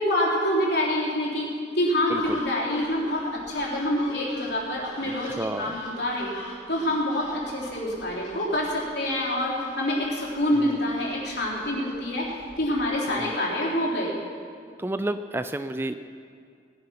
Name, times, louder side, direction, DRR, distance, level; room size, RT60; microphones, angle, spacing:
voice 1, 0.0-6.3 6.7-14.1, left 1 dB, 65° left, -4 dB, 3.6 m, -26 dB
sound 1, 2.1-12.9, left 1 dB, 80° left, 3.4 m, -46 dB
voice 2, 5.2-5.8 10.6-10.7 13.1-13.3 14.8-15.9, right 1 dB, 10° right, 11 dB, 0.3 m, -30 dB
19.0 x 10.5 x 5.8 m, 2.3 s
head